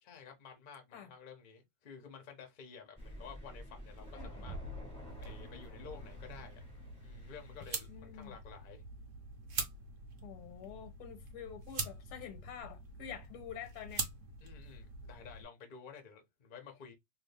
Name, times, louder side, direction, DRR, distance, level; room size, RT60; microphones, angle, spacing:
voice 1, 0.0-4.6 5.2-6.6 7.0-8.8 14.4-16.9, left 6 dB, 60° left, 0.5 m, -52 dB
Thunder, 3.0-7.8, equal, 5° left, 0.5 m, -49 dB
voice 2, 4.1-4.5 7.9-8.3 10.2-14.0, left 9 dB, 85° left, 1.5 m, -48 dB
sound 1, 4.5-6.1, equal, 75° right, 1.3 m, -50 dB
sound 2, 5.1-15.4, right 4 dB, 60° right, 0.8 m, -44 dB
3.4 x 2.4 x 3.3 m
omnidirectional pair, 2.3 m